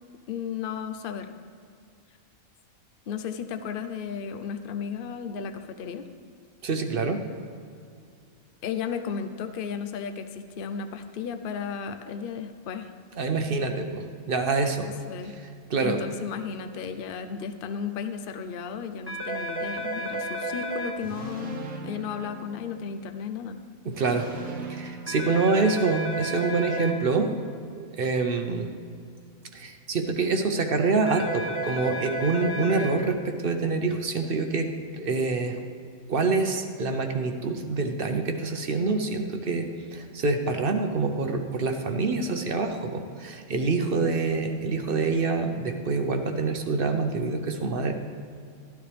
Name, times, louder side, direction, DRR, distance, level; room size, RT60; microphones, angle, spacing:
voice 1, 0.3-1.3 3.1-6.1 8.6-12.9 14.8-15.3 15.8-23.6, left 7 dB, 50° left, 9 dB, 0.7 m, -34 dB
voice 2, 6.6-7.2 13.2-14.9 15.7-16.0 23.9-24.3 24.7-27.3 27.8-28.7 29.5-35.6 36.1-47.9, right 4 dB, 50° right, 6 dB, 0.8 m, -26 dB
sound 1, 19.1-20.9 25.1-26.9 31.1-32.9, right 1 dB, 10° right, 1.0 m, -32 dB
sound 2, 21.0-23.1 23.9-26.1, right 3 dB, 75° right, 1.6 m, -40 dB
12.5 x 12.5 x 3.4 m, 2.3 s
omnidirectional pair, 1.5 m